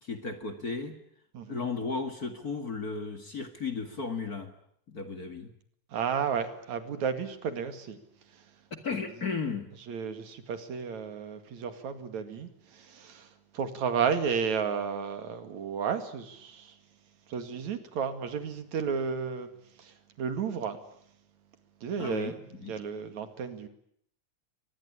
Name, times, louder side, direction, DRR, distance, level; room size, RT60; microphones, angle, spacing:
voice 1, 0.0-1.0 1.5-4.5 4.9-5.5 8.7-9.7 22.0-22.3 22.6-22.7, left 4 dB, 35° left, 8 dB, 2.1 m, -34 dB
voice 2, 5.9-8.0 8.3-8.5 9.9-16.8 17.3-19.5 19.8-20.8 21.8-23.7, right 6 dB, 75° right, 9 dB, 3.5 m, -33 dB
24.0 x 20.0 x 10.0 m, 0.70 s
omnidirectional pair, 3.3 m